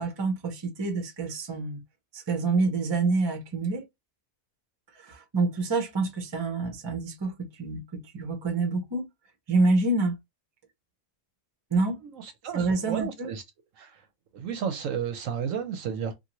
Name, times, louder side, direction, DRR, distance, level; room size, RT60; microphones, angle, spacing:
voice 1, 0.0-1.8 2.1-3.8 5.0-9.1 9.5-10.1 11.7-12.0 12.5-13.3, right 3 dB, 30° right, 0.5 m, -27 dB
voice 2, 12.4-13.4 13.8-13.9 14.3-16.1, right 7 dB, 70° right, 0.9 m, -32 dB
2.6 x 2.5 x 2.9 m
omnidirectional pair, 1.6 m